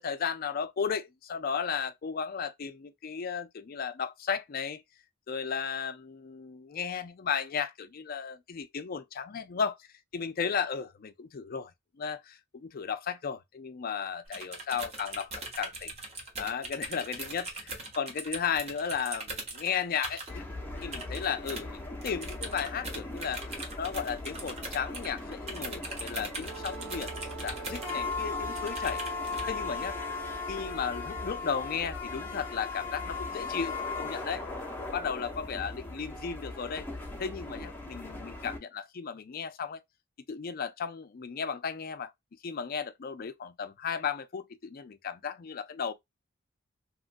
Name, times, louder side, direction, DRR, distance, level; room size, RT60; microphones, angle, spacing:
voice 1, 0.0-4.8 5.3-9.9 10.1-15.9 16.4-20.5 20.8-29.0 29.5-30.0 30.5-34.4 34.8-36.9 37.2-39.8 40.3-42.1 42.4-45.9, left 6 dB, 45° left, 0.4 m, -35 dB
sound 1, 14.3-20.3 20.8-21.6 22.0-28.2 28.6-29.5, right 2 dB, 30° right, 0.9 m, -40 dB
sound 2, 20.3-38.6, left 3 dB, 10° left, 0.8 m, -38 dB
Wind instrument woodwind instrument, 26.5-31.6, right 10 dB, 75° right, 0.4 m, -45 dB
3.0 x 2.5 x 2.5 m
head